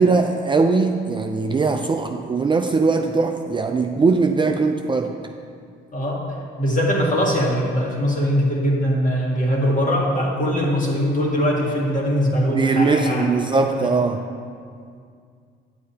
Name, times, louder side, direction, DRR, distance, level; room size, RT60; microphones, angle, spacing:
voice 1, 0.0-5.1 12.4-14.2, right 4 dB, 25° right, 4 dB, 0.4 m, -20 dB
voice 2, 5.9-6.2 6.6-13.2 13.8-13.9, equal, 40° left, -3 dB, 1.8 m, -21 dB
9.7 x 7.5 x 2.8 m, 2.2 s
cardioid pair, 90°, 20 cm